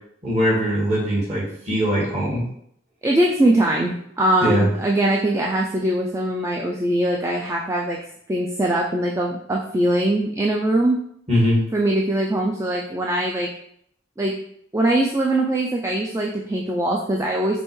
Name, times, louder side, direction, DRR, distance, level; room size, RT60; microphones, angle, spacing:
voice 1, 0.2-2.4 4.4-4.7 11.3-11.6, equal, 35° right, -5 dB, 1.8 m, -21 dB
voice 2, 3.0-8.0 8.3-11.0 11.7-13.5 14.2-14.4 14.7-17.6, right 1 dB, 15° right, -1 dB, 0.3 m, -21 dB
5.4 x 3.1 x 3.1 m, 0.70 s
head